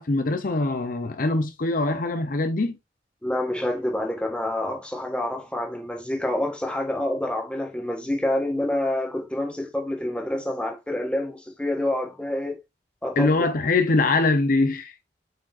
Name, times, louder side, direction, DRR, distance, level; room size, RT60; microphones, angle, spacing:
voice 1, 0.0-2.8 13.2-14.9, left 2 dB, 50° left, 0.7 m, -23 dB
voice 2, 3.2-12.6 13.0-13.3, left 1 dB, 5° left, 1.6 m, -27 dB
7.6 x 5.1 x 2.5 m
head